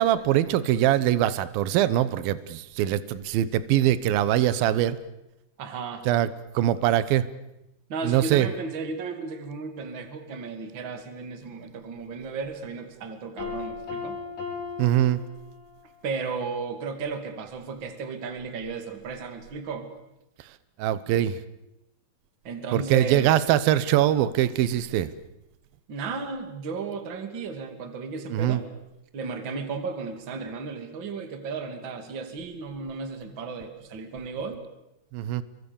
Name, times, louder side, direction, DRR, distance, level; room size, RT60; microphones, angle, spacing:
voice 1, 0.0-5.0 6.1-6.3 6.5-7.2 8.0-8.5 14.8-15.2 20.8-21.4 22.7-25.1 28.3-28.6 35.1-35.4, right 12 dB, 75° right, 15 dB, 2.2 m, -22 dB
voice 2, 5.6-6.0 7.9-14.2 16.0-19.9 22.4-23.4 25.9-28.7 29.1-34.6, right 4 dB, 35° right, 7 dB, 2.2 m, -34 dB
Piano, 13.4-15.9, left 5 dB, 55° left, 8.5 m, -36 dB
29.0 x 23.5 x 7.2 m, 0.91 s
omnidirectional pair, 5.5 m